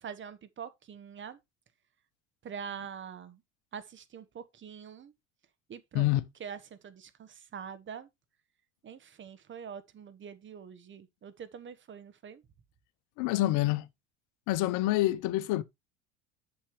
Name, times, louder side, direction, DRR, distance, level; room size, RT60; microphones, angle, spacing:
voice 1, 0.0-1.4 2.4-3.4 3.7-5.1 5.7-6.1 6.4-8.1 8.8-12.4, right 7 dB, 35° right, 1.3 m, -44 dB
voice 2, 13.2-13.9 14.5-15.6, left 16 dB, 60° left, 0.8 m, -27 dB
8.3 x 7.0 x 3.2 m
hypercardioid pair, 75°, 35 cm